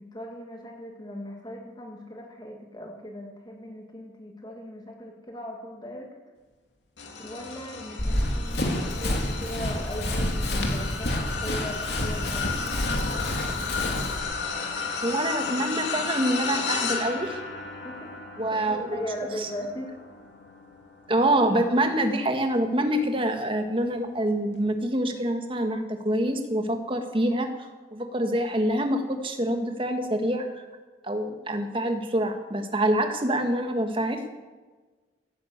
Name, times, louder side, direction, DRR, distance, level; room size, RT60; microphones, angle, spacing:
voice 1, 0.0-6.1 7.2-12.6 17.8-18.1 18.4-19.9, equal, 25° left, 1 dB, 2.0 m, -38 dB
sound 1, 7.0-22.5 23.0-23.3 24.5-24.6, left 4 dB, 85° left, 2.7 m, -34 dB
Run, 8.0-14.2, left 1 dB, 65° left, 3.0 m, -28 dB
voice 2, 15.0-17.4 18.4-19.0 19.4-19.5 21.1-27.5 27.9-30.5 31.0-34.2, right 1 dB, 30° right, 6 dB, 1.6 m, -26 dB
16.0 x 10.5 x 8.1 m, 1.3 s
head